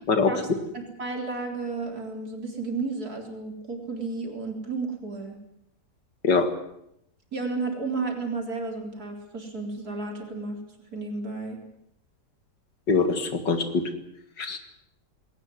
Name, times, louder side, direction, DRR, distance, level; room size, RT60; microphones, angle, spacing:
voice 1, 0.7-5.4 7.3-10.6 10.9-11.6, right 3 dB, 50° right, 3 dB, 4.3 m, -32 dB
voice 2, 12.9-13.8 14.4-14.6, left 4 dB, 65° left, 8 dB, 2.7 m, -23 dB
20.0 x 18.5 x 9.7 m, 0.77 s
omnidirectional pair, 2.0 m